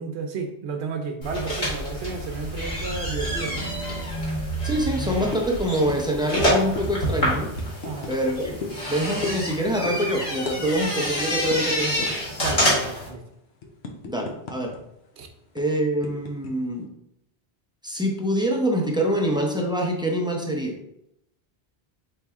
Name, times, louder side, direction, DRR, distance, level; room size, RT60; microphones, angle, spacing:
voice 1, 0.0-3.7 7.8-8.2 12.4-13.2 15.2-15.3, right 4 dB, 85° right, 5 dB, 0.9 m, -32 dB
sound 1, 1.2-13.1, equal, 55° left, 1.7 m, -27 dB
voice 2, 4.6-7.5 8.1-8.5 8.9-12.2 14.1-14.7 15.5-16.9 17.8-20.8, equal, 5° right, 0 dB, 0.4 m, -25 dB
sound 2, 5.3-5.5 5.9-6.0 6.3-6.4 6.8-6.9 7.6-8.2 8.6-8.8 9.2-9.5 9.8-10.0 10.4-10.6 10.9-11.0 11.5-11.6 12.0-12.2 12.6-12.9 13.3-14.8 15.0-15.2 15.6-16.5, left 3 dB, 80° left, 1.0 m, -35 dB
4.3 x 3.3 x 3.5 m, 0.80 s
omnidirectional pair, 1.1 m